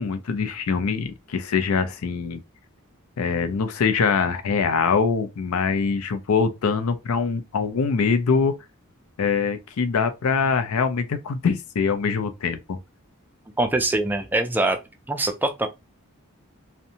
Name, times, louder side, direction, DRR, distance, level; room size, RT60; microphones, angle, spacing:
voice 1, 0.0-2.4 3.2-8.5 9.2-12.8, left 5 dB, 85° left, 0.4 m, -23 dB
voice 2, 13.6-14.8 15.1-15.7, right 2 dB, 10° right, 0.3 m, -23 dB
2.6 x 2.1 x 2.7 m
head